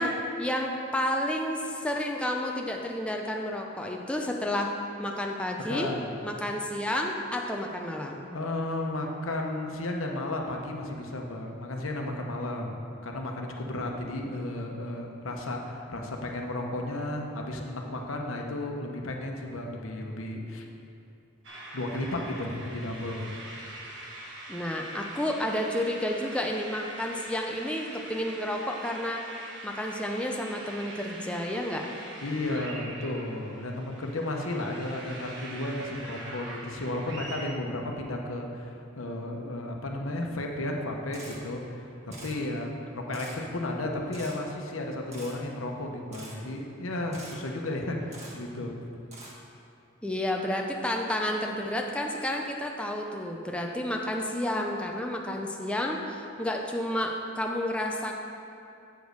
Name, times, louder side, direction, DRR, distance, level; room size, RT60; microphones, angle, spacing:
voice 1, 0.0-4.7 5.0-5.9 6.2-8.3 24.5-29.2 29.6-31.9 50.0-58.1, left 1 dB, 5° left, 0 dB, 0.5 m, -31 dB
voice 2, 5.6-6.1 8.3-12.8 13.0-20.6 21.7-23.3 32.2-48.7, left 1 dB, 85° left, 1 dB, 1.0 m, -33 dB
sound 1, 21.4-37.4, right 1 dB, 60° right, 1.3 m, -43 dB
Camera, 41.1-41.4 42.1-42.4 43.1-43.4 44.1-44.4 45.1-45.3 46.1-46.4 47.1-47.4 48.1-48.3 49.1-49.3, right 2 dB, 35° right, 1.5 m, -45 dB
8.0 x 5.2 x 6.4 m, 2.7 s
head